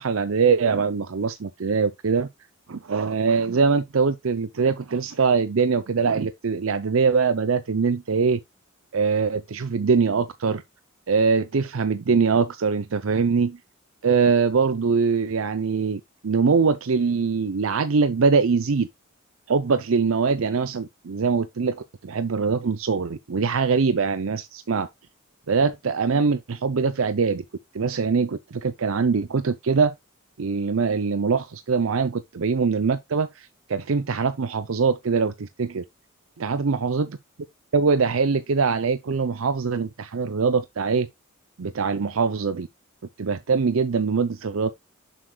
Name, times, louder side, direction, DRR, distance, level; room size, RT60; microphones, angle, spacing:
voice 1, 0.0-2.3 2.7-8.4 8.9-10.6 11.1-13.6 14.0-18.9 19.5-24.9 25.5-27.4 27.7-29.9 30.4-35.8 36.4-37.1 37.7-41.1 41.6-42.7 43.2-44.7, right 5 dB, 75° right, 0.6 m, -23 dB
7.4 x 6.6 x 2.3 m
head